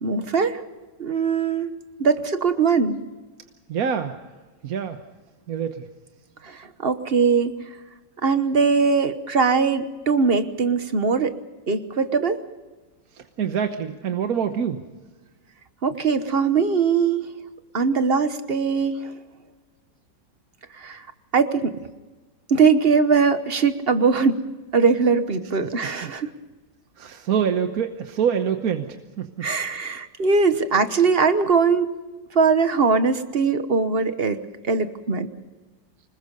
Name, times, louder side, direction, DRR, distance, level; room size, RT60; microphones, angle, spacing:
voice 1, 0.0-0.6 1.0-1.7 2.0-3.0 6.4-7.5 8.2-11.4 11.7-12.4 15.8-17.2 17.7-19.1 20.8-21.0 21.3-21.8 22.5-24.4 24.7-26.3 29.4-31.9 32.3-34.4 34.6-35.3, right 5 dB, 40° right, 10 dB, 1.0 m, -21 dB
voice 2, 3.7-4.2 4.6-5.0 5.5-5.9 13.1-14.8 26.0-26.1 27.0-29.5, right 7 dB, 55° right, 7 dB, 1.4 m, -26 dB
25.5 x 21.0 x 5.4 m, 1.2 s
omnidirectional pair, 2.1 m